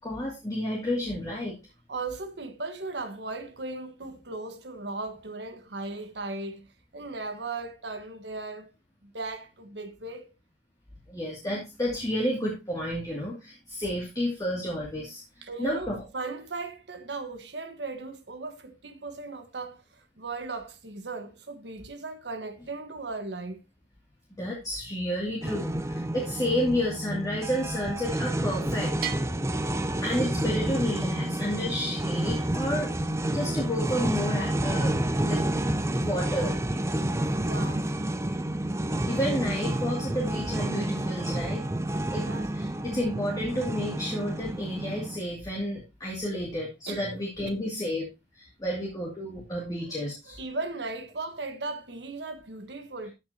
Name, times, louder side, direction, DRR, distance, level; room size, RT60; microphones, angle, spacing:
voice 1, 0.0-1.6 11.1-16.0 24.4-28.9 30.0-32.9 33.3-34.9 35.3-35.4 36.0-36.6 39.1-41.7 42.1-48.1 48.3-50.4, equal, 20° left, 2.5 m, -31 dB
voice 2, 1.9-6.7 6.9-8.7 9.0-10.3 15.4-23.6 37.4-37.9 42.1-42.5 46.9-47.6 49.5-49.6 50.0-53.1, right 3 dB, 80° right, 1.4 m, -37 dB
sound 1, 25.4-45.2, right 1 dB, 15° right, 0.6 m, -29 dB
Bell, 29.0-30.7, right 9 dB, 55° right, 1.2 m, -39 dB
14.0 x 6.2 x 2.8 m
head